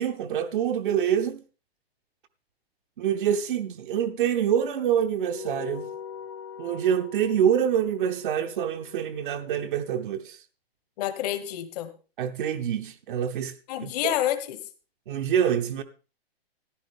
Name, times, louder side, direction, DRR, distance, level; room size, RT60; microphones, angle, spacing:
voice 1, 0.0-1.4 3.0-5.9 6.6-10.4 12.2-13.5 13.8-14.1 15.1-15.8, right 9 dB, 50° right, 0.8 m, -26 dB
sound 1, 5.2-10.0, left 7 dB, 90° left, 3.5 m, -42 dB
voice 2, 11.0-11.9 13.7-14.6, left 12 dB, 40° left, 1.3 m, -28 dB
14.0 x 10.5 x 3.5 m
hypercardioid pair, 130°, 32 cm